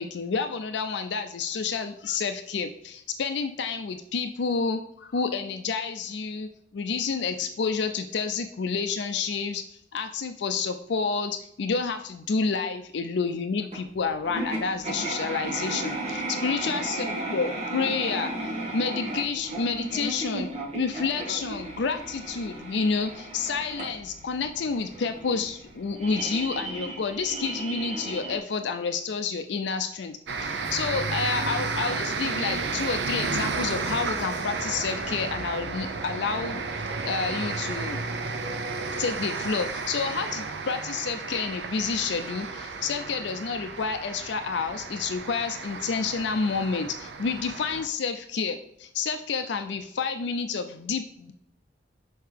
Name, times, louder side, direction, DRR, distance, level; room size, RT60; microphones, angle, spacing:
voice 1, 0.0-18.3 18.7-38.0 39.0-51.3, left 5 dB, 70° left, 7 dB, 0.4 m, -29 dB
sound 1, 13.7-28.4, right 2 dB, 35° right, 1.7 m, -35 dB
sound 2, 30.3-47.9, right 4 dB, 70° right, 0.7 m, -32 dB
6.5 x 4.6 x 3.3 m, 0.74 s
head